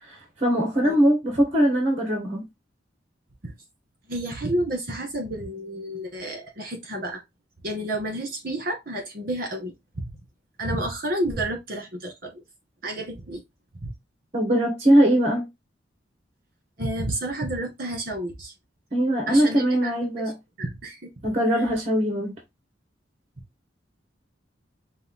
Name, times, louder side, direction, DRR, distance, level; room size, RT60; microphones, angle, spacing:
voice 1, 0.0-2.4 14.3-15.5 18.9-20.3 21.2-22.3, right 1 dB, 35° right, 1.3 m, -21 dB
voice 2, 4.1-7.2 7.6-9.7 10.6-12.4 12.8-13.4 13.8-13.9 16.8-18.5 19.3-20.1 20.6-21.0 21.5-21.6, right 1 dB, 50° right, 2.0 m, -30 dB
5.4 x 2.6 x 3.8 m
head